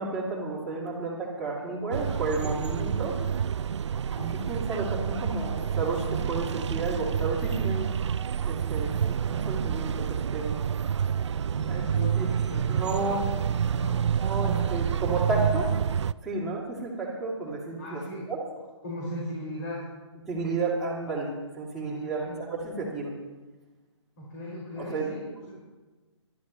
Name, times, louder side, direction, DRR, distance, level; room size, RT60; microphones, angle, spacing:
voice 1, 0.0-3.1 4.1-7.9 8.4-10.6 11.7-11.8 12.1-12.3 12.7-13.2 14.2-15.7 16.2-18.0 18.3-18.4 20.3-22.2 22.5-23.1 24.8-25.1, right 3 dB, ahead, -9 dB, 3.3 m, -32 dB
sound 1, 1.9-16.1, right 8 dB, 70° right, 0.4 m, -28 dB
voice 2, 11.6-13.1 13.7-14.0 14.3-14.6 17.8-18.3 18.8-19.9 21.9-22.4 24.2-25.6, equal, 40° left, -4 dB, 5.6 m, -38 dB
23.5 x 12.5 x 3.2 m, 1.2 s
figure-of-eight pair, 145°, 15 cm